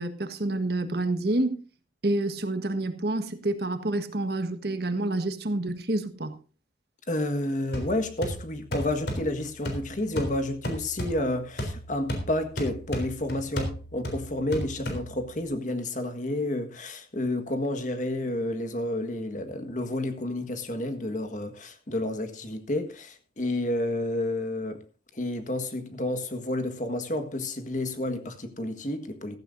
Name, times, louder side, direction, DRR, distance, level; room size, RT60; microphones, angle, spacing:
voice 1, 0.0-1.6 2.0-6.3, right 2 dB, 60° right, 1.5 m, -28 dB
voice 2, 7.1-24.8 25.1-29.4, left 1 dB, 45° left, 1.6 m, -30 dB
sound 1, 7.7-15.5, equal, 65° left, 3.7 m, -35 dB
15.5 x 14.5 x 2.7 m
head